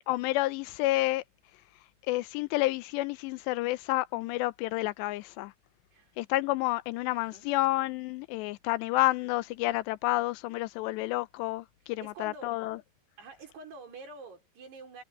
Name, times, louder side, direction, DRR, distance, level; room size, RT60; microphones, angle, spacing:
voice 1, 0.1-1.2 2.1-5.5 6.2-12.8, left 18 dB, 85° left, 2.8 m, -30 dB
voice 2, 7.2-7.5 12.0-12.6 13.2-15.0, right 3 dB, 65° right, 7.1 m, -47 dB
omnidirectional pair, 5.0 m